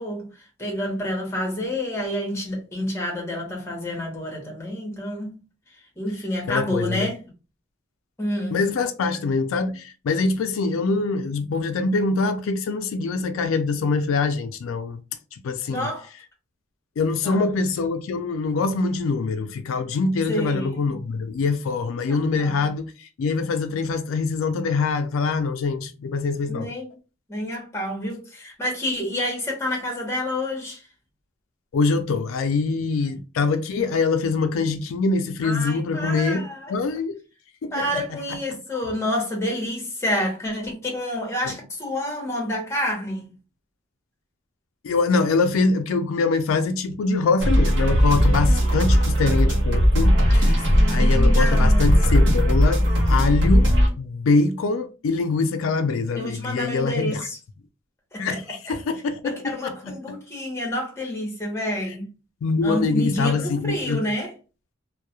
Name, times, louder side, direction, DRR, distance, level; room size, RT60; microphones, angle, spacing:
voice 1, 0.0-5.4 6.0-7.2 8.2-8.6 15.7-16.1 17.2-17.5 20.3-20.8 22.1-22.7 26.5-26.9 27.3-30.8 33.1-33.2 35.4-36.7 37.7-43.3 50.3-52.2 56.2-57.4 58.1-58.4 58.7-58.8 59.2-62.1 62.6-64.3, left 1 dB, 15° left, 0.8 m, -29 dB
voice 2, 6.5-7.1 8.5-15.0 15.3-15.9 17.0-26.7 31.7-37.1 37.6-38.0 41.5-41.6 44.8-52.8 53.1-53.7 54.0-57.3 58.2-59.3 59.6-59.9 62.4-64.0, left 4 dB, 85° left, 0.3 m, -24 dB
sound 1, 47.4-53.9, equal, 60° right, 0.6 m, -18 dB
2.3 x 2.0 x 2.8 m
head